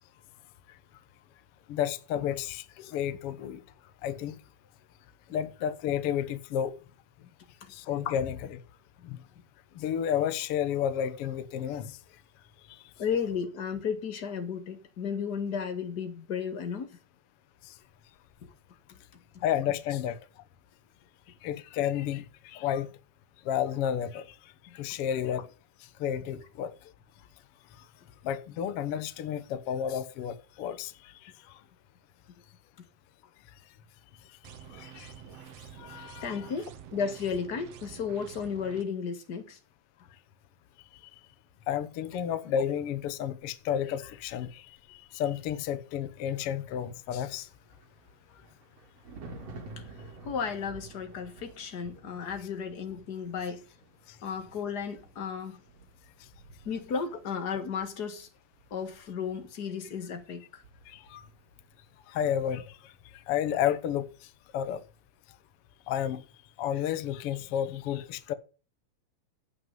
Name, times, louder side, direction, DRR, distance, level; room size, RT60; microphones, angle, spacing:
voice 1, 1.7-3.6 4.0-4.3 5.3-6.7 7.7-8.6 9.0-9.2 9.7-12.0 12.7-12.8 17.7-17.8 19.4-20.2 21.4-22.9 23.4-24.3 24.7-25.5 26.0-26.7 28.2-31.3 34.7-35.1 35.8-36.5 41.7-47.5 60.9-61.2 62.1-64.1 64.5-64.8 65.9-66.2 66.6-68.3, left 9 dB, 65° left, 1.4 m, -31 dB
voice 2, 13.0-17.0 18.4-18.5 18.9-19.0 19.3-19.4 24.7-24.8 36.2-39.6 49.8-49.9 50.2-53.6 54.2-55.6 56.6-58.3 58.7-60.6, left 6 dB, 40° left, 1.6 m, -34 dB
sound 1, 34.4-38.8, right 9 dB, 65° right, 1.7 m, -48 dB
Thunder, 47.3-61.9 62.1-62.4, right 3 dB, 45° right, 3.8 m, -51 dB
16.5 x 6.1 x 5.4 m
omnidirectional pair, 4.0 m